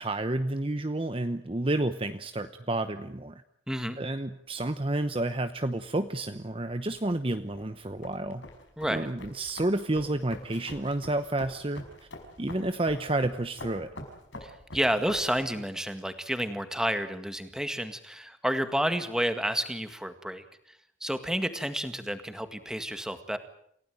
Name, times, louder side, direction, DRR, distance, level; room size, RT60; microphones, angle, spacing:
voice 1, 0.0-3.4 4.0-8.5 8.9-11.8 12.4-13.9, right 2 dB, 30° right, 10 dB, 0.9 m, -30 dB
voice 2, 3.7-4.0 8.8-9.1 14.4-20.4 21.0-23.4, equal, 5° right, 9 dB, 1.8 m, -30 dB
sound 1, 4.6-15.5, left 1 dB, 75° left, 5.4 m, -47 dB
28.5 x 17.0 x 9.2 m, 0.70 s
head